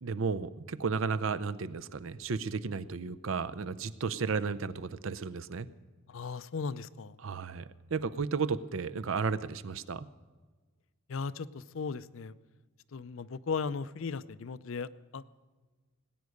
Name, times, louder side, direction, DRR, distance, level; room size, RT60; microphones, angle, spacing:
voice 1, 0.0-5.7 7.2-10.1, right 5 dB, 65° right, 14 dB, 0.6 m, -33 dB
voice 2, 6.1-7.1 11.1-12.3 12.9-15.2, left 5 dB, 65° left, 16 dB, 0.5 m, -37 dB
19.0 x 9.5 x 6.5 m, 1.4 s
head